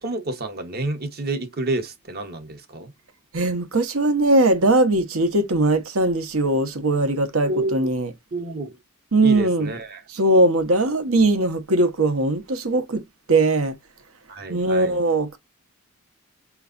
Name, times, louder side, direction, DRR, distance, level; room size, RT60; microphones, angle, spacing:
voice 1, 0.0-2.9 7.4-7.9 8.3-8.8 9.2-10.0 14.3-15.0, right 2 dB, 45° right, 1.1 m, -29 dB
voice 2, 3.3-8.1 9.1-9.7 10.1-13.0 13.3-13.7 14.5-15.4, right 2 dB, 65° right, 1.0 m, -20 dB
5.9 x 3.1 x 2.5 m
head